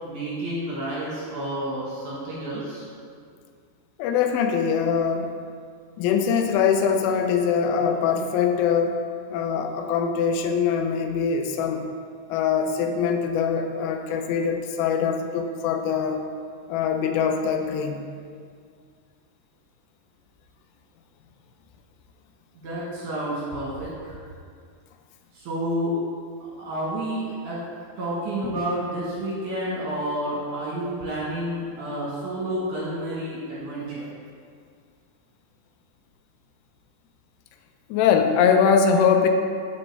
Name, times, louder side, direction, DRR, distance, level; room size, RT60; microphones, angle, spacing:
voice 1, 0.0-2.9 22.6-24.2 25.3-25.9 26.6-27.6 28.0-34.1, right 1 dB, 65° right, -7 dB, 2.2 m, -30 dB
voice 2, 4.0-5.3 6.0-9.0 9.3-11.9 12.3-16.2 16.7-18.0 37.9-39.3, left 6 dB, 85° left, 5 dB, 2.7 m, -22 dB
7.2 x 7.0 x 3.2 m, 2.2 s
omnidirectional pair, 4.9 m